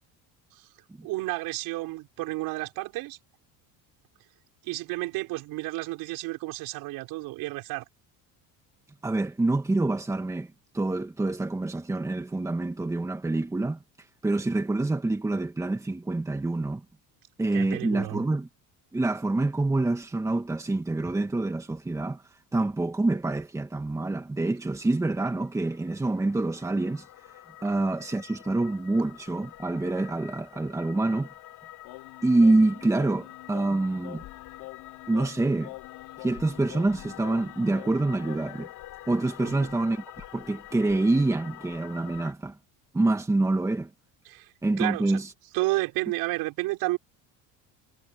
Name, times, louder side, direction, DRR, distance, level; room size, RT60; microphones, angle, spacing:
voice 1, 1.0-3.2 4.6-7.8 17.5-18.2 39.4-39.7 44.3-45.2 45.5-47.0, right 20 dB, 70° right, 6.1 m, -31 dB
voice 2, 9.0-13.8 14.2-16.8 17.4-18.5 18.9-22.2 22.5-27.1 27.6-31.3 32.2-34.2 35.1-35.7 36.2-38.7 39.1-42.6 42.9-43.9 44.6-45.3, right 2 dB, 10° right, 2.0 m, -26 dB
sound 1, 24.8-42.3, left 15 dB, 55° left, 6.9 m, -47 dB
Singing, 31.8-38.7, left 23 dB, 85° left, 4.8 m, -46 dB
cardioid pair, 165°, 38 cm